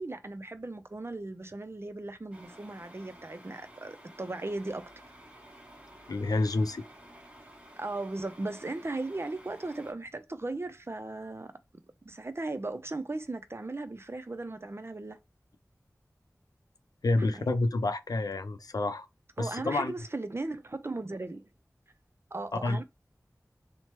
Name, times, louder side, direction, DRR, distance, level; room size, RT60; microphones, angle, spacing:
voice 1, 0.0-4.9 7.8-11.5 12.0-15.2 17.2-17.5 19.4-21.5 22.3-22.8, right 2 dB, 40° right, 0.5 m, -37 dB
sound 1, 2.3-9.9, right 1 dB, 20° right, 0.9 m, -53 dB
voice 2, 6.1-6.8 17.0-19.1 19.4-19.9 22.6-22.8, left 2 dB, 85° left, 0.4 m, -28 dB
3.0 x 2.1 x 3.0 m
wide cardioid pair, 40°, 6 cm